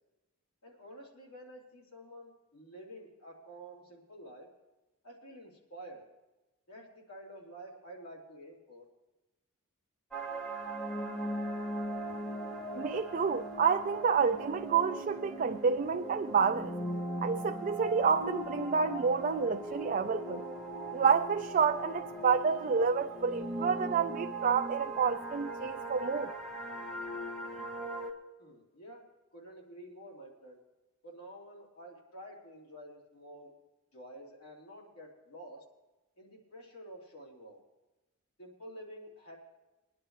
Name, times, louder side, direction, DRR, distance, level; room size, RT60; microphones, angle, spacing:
voice 1, 0.6-4.5 5.0-6.0 6.7-8.9 28.4-29.0 29.3-30.6 31.0-33.5 33.9-35.6 36.2-37.6 38.4-39.4, right 1 dB, 80° left, 3.4 m, -50 dB
sound 1, 10.1-28.1, right 1 dB, 5° left, 1.5 m, -39 dB
voice 2, 12.8-16.8 17.2-20.4 20.9-26.3, right 6 dB, 35° right, 0.4 m, -29 dB
22.0 x 10.5 x 3.2 m
head